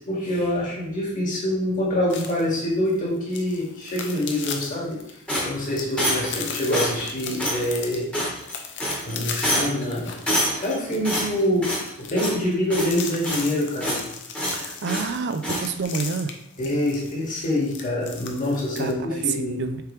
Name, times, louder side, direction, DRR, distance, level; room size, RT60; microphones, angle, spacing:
voice 1, 0.0-5.0 5.4-8.3 9.0-10.1 10.6-11.7 12.0-14.0 16.6-19.6, left 1 dB, 40° left, -5 dB, 2.3 m, -25 dB
sound 1, 2.1-18.9, left 6 dB, 55° left, 0.8 m, -38 dB
sound 2, 5.3-6.4 6.7-7.1 7.4-7.6 8.1-8.5 8.8-9.1 9.4-9.8 10.3-10.7 11.0-11.9 12.2-12.4 12.7-13.5 13.8-14.1 14.3-15.1 15.4-15.7, equal, 5° left, 1.4 m, -26 dB
voice 2, 14.5-16.3 18.8-19.8, right 5 dB, 50° right, 9 dB, 0.5 m, -28 dB
6.7 x 4.7 x 3.3 m, 0.76 s
head